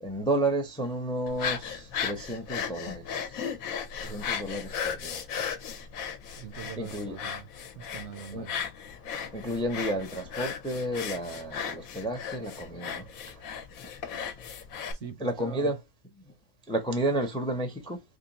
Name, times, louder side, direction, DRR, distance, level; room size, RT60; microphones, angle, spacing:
voice 1, 0.0-3.5 4.0-5.2 6.8-7.1 8.3-8.5 9.3-13.4 15.2-15.8 16.7-18.0, right 1 dB, 5° left, 0.4 m, -31 dB
sound 1, 1.3-14.9, left 7 dB, 75° left, 1.2 m, -36 dB
voice 2, 6.4-7.5 7.8-8.6 14.9-15.7, right 8 dB, 65° right, 0.7 m, -43 dB
3.6 x 2.5 x 3.9 m
omnidirectional pair, 1.5 m